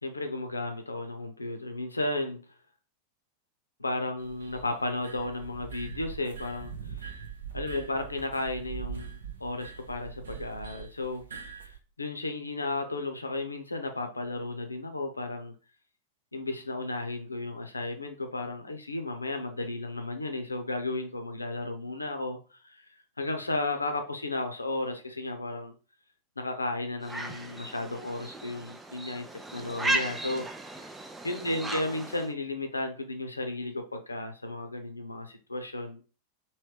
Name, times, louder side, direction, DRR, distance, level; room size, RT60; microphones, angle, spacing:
voice 1, 0.0-2.4 3.8-7.1 7.5-11.7 12.0-15.5 16.3-22.8 23.2-25.7 26.4-29.3 29.5-30.4 30.8-30.9 31.2-36.0, left 2 dB, 80° left, 0.7 m, -34 dB
sound 1, 4.2-11.8, right 7 dB, 65° right, 0.8 m, -42 dB
sound 2, 27.0-32.3, right 2 dB, 10° right, 0.5 m, -35 dB
3.2 x 3.0 x 4.6 m
figure-of-eight pair, 90°, 0 cm